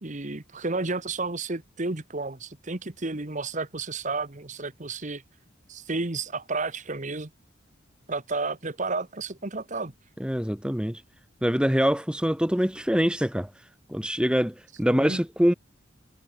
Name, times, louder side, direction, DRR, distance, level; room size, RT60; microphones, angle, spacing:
voice 1, 0.0-5.2 5.7-7.3 8.1-9.9 14.9-15.2, right 3 dB, 40° right, 1.4 m, -32 dB
voice 2, 10.2-11.0 11.4-13.5 13.9-15.5, equal, 5° right, 1.2 m, -24 dB
head